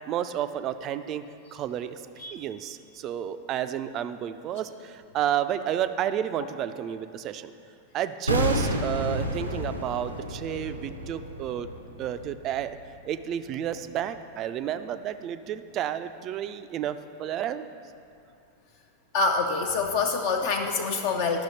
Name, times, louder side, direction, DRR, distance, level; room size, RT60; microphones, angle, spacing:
voice 1, 0.1-1.2 1.5-2.0 2.3-7.5 7.9-11.7 12.0-12.8 13.1-17.7, right 10 dB, 35° right, 11 dB, 0.3 m, -31 dB
sound 1, 8.3-13.3 13.5-13.7, equal, 85° right, 0.7 m, -31 dB
voice 2, 19.1-21.4, left 4 dB, 50° left, 3 dB, 0.5 m, -26 dB
11.0 x 6.2 x 4.2 m, 2.6 s
figure-of-eight pair, 90°, 0 cm